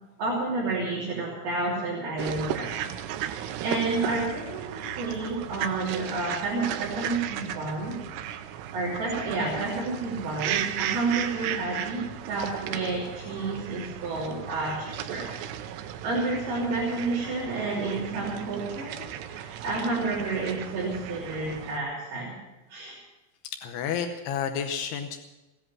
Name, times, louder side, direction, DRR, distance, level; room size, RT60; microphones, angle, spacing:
voice 1, 0.2-2.9 3.2-8.0 8.7-15.3 15.8-22.3 22.7-22.9, right 3 dB, 55° right, -6 dB, 4.6 m, -30 dB
sound 1, 2.2-21.8, right 10 dB, 80° right, 2.4 m, -35 dB
voice 2, 23.6-25.2, left 7 dB, 85° left, 6 dB, 2.3 m, -30 dB
17.0 x 10.5 x 7.4 m, 1.1 s
omnidirectional pair, 5.9 m